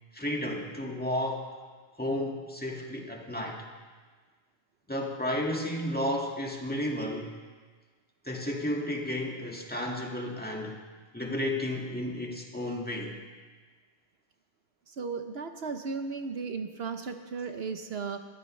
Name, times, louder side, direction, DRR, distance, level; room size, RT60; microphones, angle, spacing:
voice 1, 0.1-1.5 2.0-3.6 4.9-7.4 8.2-10.8 11.1-13.2, left 1 dB, 10° left, -1 dB, 1.9 m, -32 dB
voice 2, 14.9-18.2, right 5 dB, 65° right, 7 dB, 1.0 m, -35 dB
21.0 x 14.0 x 3.2 m, 1.4 s
omnidirectional pair, 1.1 m